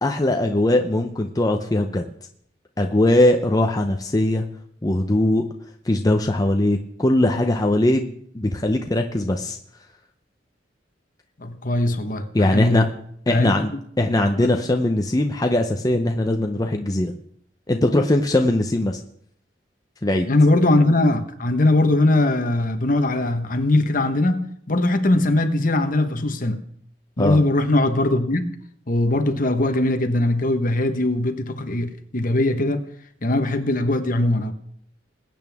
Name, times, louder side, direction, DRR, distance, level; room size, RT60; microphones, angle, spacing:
voice 1, 0.0-2.1 2.8-4.4 4.8-5.4 5.8-9.6 12.3-12.9 13.3-13.7 14.0-17.1 17.7-19.0 20.0-20.3 27.2-27.4, left 1 dB, 20° left, 0.7 m, -20 dB
voice 2, 11.4-12.9 13.3-13.7 14.4-14.5 20.3-26.6 27.2-28.5 28.9-32.9 33.2-34.5, left 2 dB, 50° left, 1.2 m, -20 dB
21.5 x 8.9 x 3.6 m
head